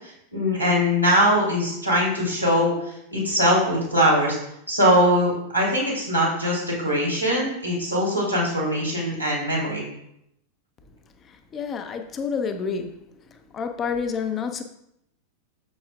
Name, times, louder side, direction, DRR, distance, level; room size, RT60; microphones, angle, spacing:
voice 1, 0.3-2.7 3.1-4.4 4.7-9.8, equal, 90° right, -6 dB, 2.8 m, -21 dB
voice 2, 11.2-13.0 13.3-14.6, left 6 dB, 25° left, 7 dB, 0.7 m, -29 dB
7.2 x 7.1 x 2.4 m, 0.78 s
figure-of-eight pair, 90°, 0 cm